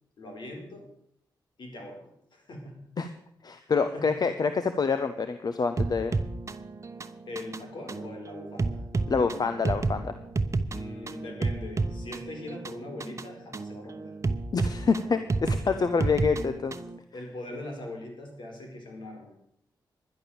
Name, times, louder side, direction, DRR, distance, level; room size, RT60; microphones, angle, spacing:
voice 1, 0.2-0.9 1.6-2.8 3.6-4.2 7.3-8.8 10.7-14.1 15.7-15.8 17.1-19.3, left 1 dB, 75° left, 1 dB, 4.4 m, -41 dB
voice 2, 3.4-6.1 9.1-10.1 14.5-16.7, left 5 dB, 55° left, 10 dB, 0.9 m, -27 dB
sound 1, 5.8-17.0, right 3 dB, 40° right, 0.9 m, -31 dB
11.5 x 11.0 x 7.0 m, 0.73 s
cardioid pair, 70°, 8 cm